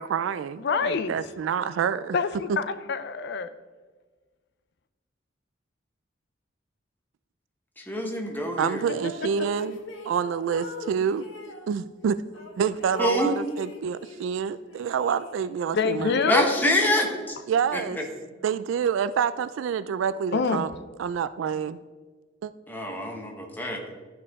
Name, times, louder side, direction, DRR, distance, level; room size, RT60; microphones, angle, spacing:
voice 1, 0.0-2.2 8.6-9.8 10.1-11.2 11.7-12.2 12.6-16.2 17.5-18.0 18.4-20.7 21.0-21.8 22.4-22.5, right 7 dB, 80° right, 15 dB, 0.3 m, -27 dB
voice 2, 0.6-1.2 2.1-3.5 9.0-9.5 15.7-16.6 20.3-20.6, left 5 dB, 60° left, 12 dB, 0.5 m, -26 dB
voice 3, 7.8-8.8 13.0-13.3 16.3-17.1 17.7-17.8 22.7-23.8, left 1 dB, 10° left, 2 dB, 1.0 m, -25 dB
sound 1, 8.8-11.7 12.3-14.3 14.6-15.7, left 3 dB, 85° left, 1.1 m, -42 dB
12.0 x 4.7 x 3.6 m, 1.4 s
head